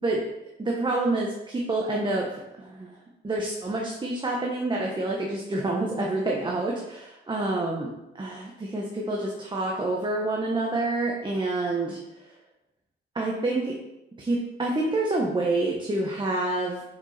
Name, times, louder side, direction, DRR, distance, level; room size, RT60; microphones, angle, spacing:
voice 1, 0.6-3.0 3.2-7.9 8.2-12.3 13.1-13.8 14.2-16.8, right 2 dB, 25° right, -2 dB, 1.3 m, -28 dB
6.1 x 5.9 x 4.4 m, 0.91 s
cardioid pair, 90°, 20 cm